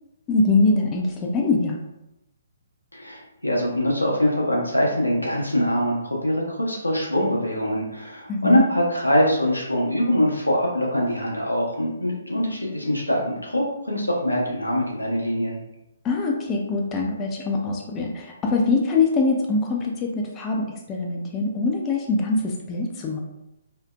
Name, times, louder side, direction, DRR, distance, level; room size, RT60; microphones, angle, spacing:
voice 1, 0.3-1.8 8.3-8.6 16.0-23.2, left 3 dB, 20° left, -1 dB, 0.3 m, -23 dB
voice 2, 2.9-15.6, equal, 90° left, -2 dB, 0.7 m, -23 dB
2.6 x 2.0 x 2.3 m, 0.90 s
figure-of-eight pair, 130°, 0 cm